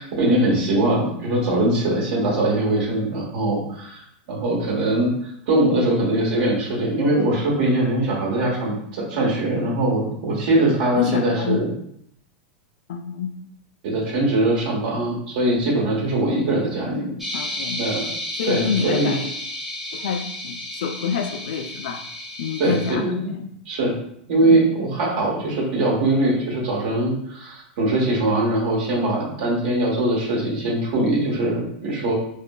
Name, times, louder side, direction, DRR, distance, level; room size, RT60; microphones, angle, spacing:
voice 1, 0.0-11.7 13.8-17.1 17.8-18.1 18.4-19.1 22.6-23.3 23.7-24.0 24.3-32.1, right 1 dB, 65° right, -4 dB, 0.9 m, -22 dB
voice 2, 11.0-11.6 12.9-13.3 17.3-17.8 18.4-19.3 19.9-22.0 22.4-23.4 24.4-24.8, left 6 dB, 75° left, 7 dB, 0.4 m, -27 dB
sound 1, 17.2-22.9, left 1 dB, 5° right, 0.6 m, -32 dB
2.8 x 2.3 x 2.2 m, 0.72 s
supercardioid pair, 135°, 5 cm